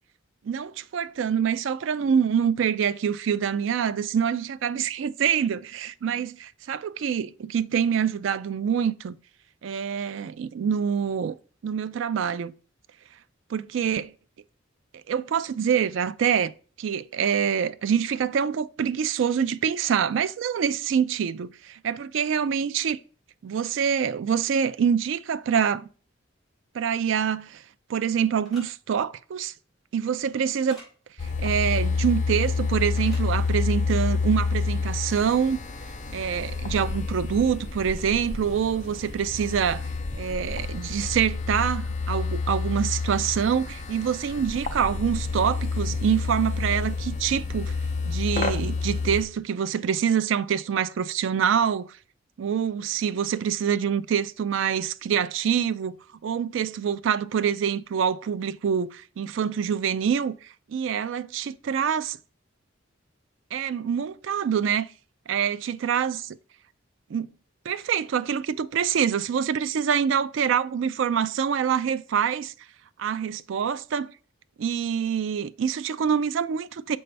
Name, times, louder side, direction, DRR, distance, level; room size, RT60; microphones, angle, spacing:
voice 1, 0.4-6.3 6.7-9.2 9.6-11.4 11.6-12.5 13.5-14.1 15.1-16.5 16.8-23.0 23.4-25.9 26.7-27.6 27.9-29.5 29.9-30.8 31.4-35.6 36.1-39.9 40.1-47.7 48.1-51.9 52.4-56.0 56.2-62.2 63.5-64.9 65.3-66.4 67.1-67.3 67.7-72.5 73.0-74.1 74.6-77.0, right 7 dB, 65° right, 0.3 m, -25 dB
sound 1, 28.4-28.6 30.7-30.9 33.0-33.3, equal, ahead, 3.9 m, -45 dB
sound 2, 31.2-49.2, left 4 dB, 35° left, 0.5 m, -29 dB
6.7 x 5.3 x 3.3 m
head